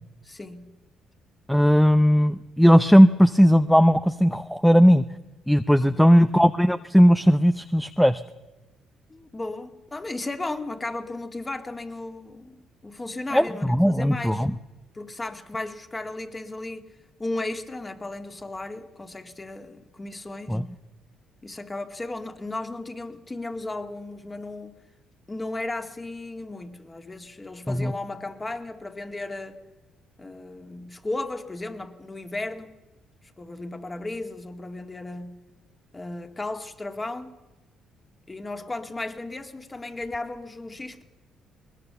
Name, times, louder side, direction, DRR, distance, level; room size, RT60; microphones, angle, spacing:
voice 1, 0.2-0.8 5.8-6.1 9.1-14.4 14.9-16.9 17.2-20.6 21.4-24.8 25.3-29.6 30.2-32.7 33.4-35.4 35.9-37.3 38.3-41.0, left 2 dB, 20° left, 2.1 m, -35 dB
voice 2, 1.5-5.1 5.5-8.2 13.3-14.5 20.5-20.6 27.7-27.9, equal, ahead, 0.7 m, -18 dB
21.0 x 19.5 x 6.9 m
supercardioid pair, 75°, 0 cm